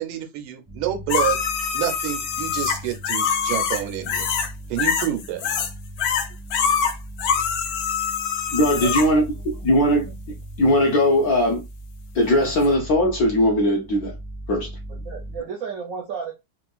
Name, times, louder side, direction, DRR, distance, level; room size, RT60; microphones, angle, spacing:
voice 1, 0.0-1.4 1.7-4.3 4.7-5.6, right 12 dB, 90° right, 1.5 m, -28 dB
sound 1, 0.7-15.4, right 1 dB, 10° right, 0.5 m, -39 dB
sound 2, 1.1-4.5 4.8-5.7 6.0-9.1 12.6-12.7, left 7 dB, 90° left, 0.8 m, -24 dB
voice 2, 8.5-10.1 10.6-11.6 12.1-14.1 14.5-14.7, equal, 65° left, 0.9 m, -19 dB
voice 3, 14.9-16.3, right 6 dB, 70° right, 0.8 m, -33 dB
3.5 x 2.5 x 2.3 m
omnidirectional pair, 2.2 m